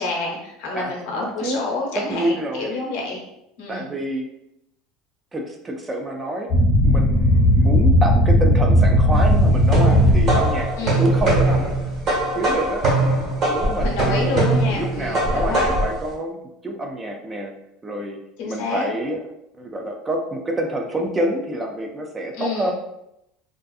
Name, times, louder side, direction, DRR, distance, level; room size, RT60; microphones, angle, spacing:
voice 1, 0.0-3.2 3.6-3.9 10.8-11.0 13.8-15.7 18.4-18.9 22.3-22.7, left 3 dB, 75° left, -1 dB, 0.8 m, -28 dB
voice 2, 0.7-1.6 1.9-2.7 3.7-4.3 5.3-6.5 6.8-10.7 11.0-11.7 12.3-12.8 13.5-14.4 14.8-16.4 16.6-17.5 17.8-18.2 18.5-19.2 19.6-22.7, right 1 dB, 15° right, 2 dB, 0.3 m, -27 dB
sound 1, 6.5-10.7, equal, 40° left, 0.7 m, -16 dB
sound 2, 9.1-16.0, right 2 dB, 40° right, 1.1 m, -21 dB
2.5 x 2.4 x 2.3 m, 0.82 s
cardioid pair, 145°, 0 cm